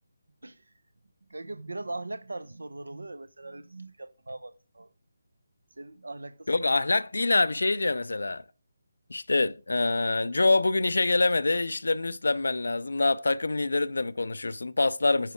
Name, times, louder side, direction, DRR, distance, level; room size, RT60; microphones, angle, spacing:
voice 1, 1.3-4.9 5.8-6.7, right 2 dB, 70° right, 0.7 m, -40 dB
voice 2, 6.5-8.4 9.1-15.3, left 3 dB, 65° left, 0.4 m, -25 dB
10.0 x 4.9 x 4.8 m
figure-of-eight pair, 150°, 0 cm